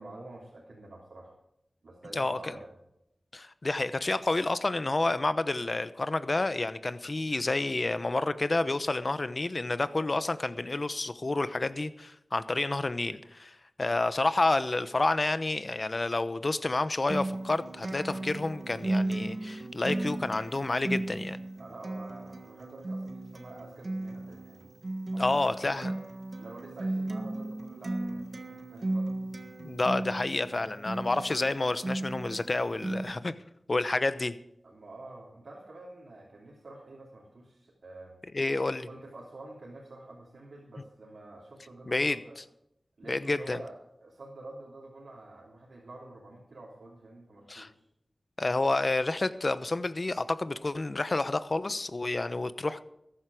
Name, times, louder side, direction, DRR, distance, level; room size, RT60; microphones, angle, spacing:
voice 1, 0.0-1.3 1.8-2.7 21.5-24.7 25.1-26.0 26.4-29.5 34.6-38.2 38.9-42.4 43.0-47.8, right 2 dB, 90° right, -5 dB, 3.3 m, -48 dB
voice 2, 2.2-2.5 3.3-21.4 25.2-25.9 29.6-33.4 33.7-34.3 38.3-38.9 41.9-42.4 43.1-43.6 47.5-47.7 48.4-52.8, left 2 dB, 55° left, 13 dB, 0.9 m, -29 dB
Acoustic guitar, 17.1-33.1, right 2 dB, 60° right, 1.5 m, -35 dB
14.5 x 11.5 x 5.0 m, 0.81 s
cardioid pair, 40°, 0 cm